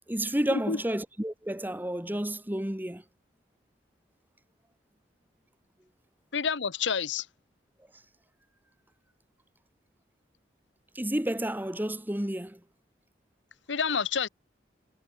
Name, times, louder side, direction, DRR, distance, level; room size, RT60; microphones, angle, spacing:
voice 1, 0.1-3.0 10.9-12.6, right 1 dB, 10° right, 1.4 m, -31 dB
voice 2, 6.3-7.3 13.7-14.3, left 6 dB, 90° left, 1.0 m, -28 dB
head